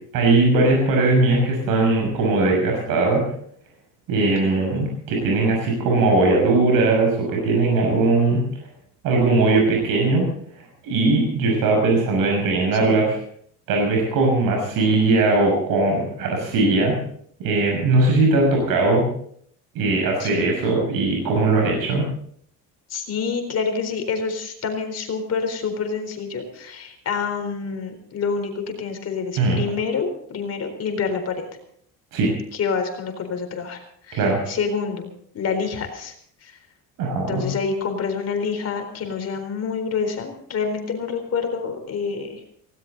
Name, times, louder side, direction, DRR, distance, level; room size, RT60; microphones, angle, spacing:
voice 1, 0.1-3.2 4.1-8.4 9.0-10.3 10.6-13.1 13.7-17.0 17.4-19.1 19.7-22.1 29.4-29.6 32.1-32.3 34.1-34.4 37.0-37.4, right 3 dB, 75° right, 0 dB, 6.4 m, -19 dB
voice 2, 4.4-4.9 12.8-13.0 20.2-20.5 22.9-31.5 32.5-35.1 35.3-36.1 36.4-36.6 37.3-42.4, left 5 dB, 45° left, 6 dB, 4.1 m, -27 dB
19.0 x 17.5 x 4.0 m, 0.63 s
cardioid pair, 120°, 35 cm